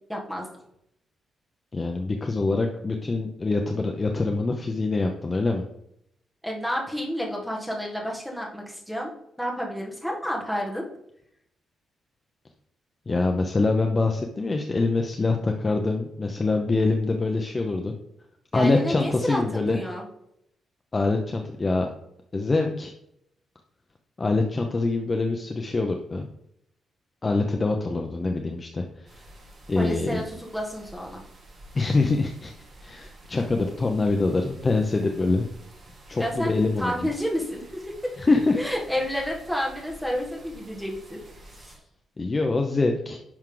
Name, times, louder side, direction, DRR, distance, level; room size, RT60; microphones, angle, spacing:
voice 1, 0.1-0.5 6.4-9.1 9.4-10.9 18.5-19.4 19.7-20.0 29.7-31.2 36.2-38.1 38.5-41.2 41.5-41.7, equal, ahead, -2 dB, 1.7 m, -30 dB
voice 2, 1.7-5.6 13.1-17.9 18.5-19.8 20.9-21.9 22.3-22.9 24.2-26.3 27.2-29.2 29.7-30.2 31.7-32.5 32.8-35.5 36.1-37.0 38.2-38.6 42.2-43.2, left 3 dB, 20° left, 3 dB, 0.7 m, -24 dB
sound 1, 29.1-41.8, right 1 dB, 35° right, 2.5 m, -49 dB
10.5 x 6.2 x 3.8 m, 0.76 s
wide cardioid pair, 170°, 0 cm